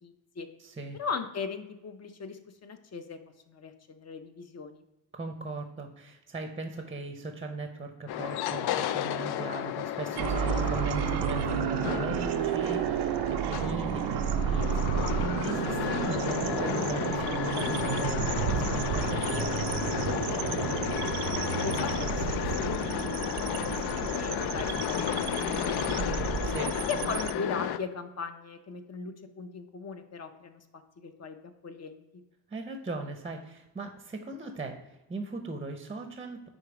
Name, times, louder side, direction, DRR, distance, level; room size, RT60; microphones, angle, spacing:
voice 1, 0.0-0.5 0.9-3.2 3.5-4.8 21.4-26.3 26.7-31.4 31.6-32.0, left 5 dB, 40° left, 8 dB, 0.7 m, -39 dB
voice 2, 0.6-1.0 5.1-20.8 26.4-26.8 32.5-36.5, right 2 dB, 15° right, 5 dB, 0.6 m, -39 dB
sound 1, 8.1-27.8, left 11 dB, 75° left, 0.5 m, -33 dB
sound 2, 10.2-27.3, right 9 dB, 85° right, 0.5 m, -31 dB
5.2 x 3.9 x 4.8 m, 0.98 s
cardioid pair, 100°, 39 cm